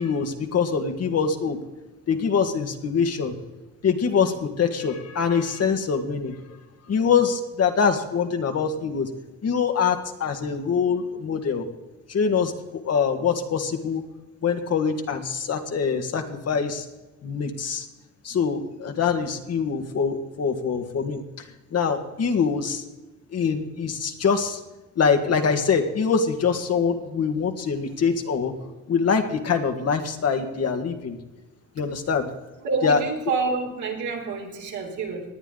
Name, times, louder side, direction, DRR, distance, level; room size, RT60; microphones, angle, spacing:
voice 1, 0.0-1.6 2.1-3.4 3.8-6.4 6.9-9.1 9.4-11.7 12.1-14.0 14.4-16.9 17.2-17.9 18.2-21.2 21.7-22.8 23.3-24.6 25.0-28.5 28.9-31.2 31.8-32.3 32.8-33.0, left 6 dB, 55° left, 5 dB, 1.8 m, -24 dB
voice 2, 32.6-35.2, right 4 dB, 75° right, 0 dB, 3.6 m, -28 dB
19.0 x 10.0 x 3.9 m, 1.1 s
cardioid pair, 90°, 30 cm